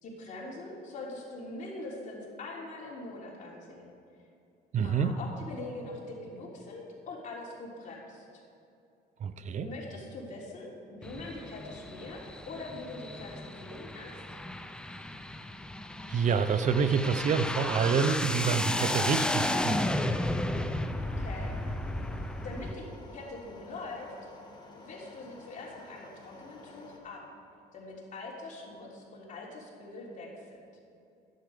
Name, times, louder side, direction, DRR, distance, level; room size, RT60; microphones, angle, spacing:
voice 1, 0.0-3.9 4.8-8.4 9.6-14.2 21.0-21.5 22.4-22.8 23.1-24.1 24.8-27.2 27.7-30.6, left 2 dB, 50° left, -3 dB, 3.4 m, -43 dB
voice 2, 4.7-5.2 9.2-9.7 16.1-19.8, right 6 dB, 45° right, 11 dB, 0.7 m, -27 dB
sound 1, 11.0-22.7, left 1 dB, 5° left, 0.6 m, -33 dB
sound 2, 19.9-27.0, left 3 dB, 25° left, 1.9 m, -52 dB
12.5 x 10.5 x 5.0 m, 2.7 s
cardioid pair, 110°, 17 cm